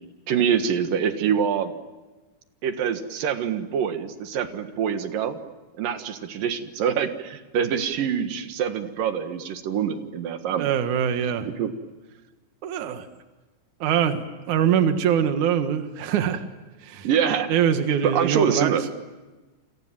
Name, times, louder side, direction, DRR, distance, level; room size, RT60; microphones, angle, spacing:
voice 1, 0.3-1.7 2.6-5.4 5.8-10.7 11.4-11.7 17.0-17.5 18.0-18.8, right 8 dB, 65° right, 8 dB, 2.3 m, -25 dB
voice 2, 10.5-11.5 12.6-13.1 13.8-16.4 16.8-17.1 17.5-18.7, right 8 dB, 85° right, 8 dB, 1.7 m, -23 dB
29.5 x 26.5 x 7.5 m, 1.2 s
omnidirectional pair, 6.0 m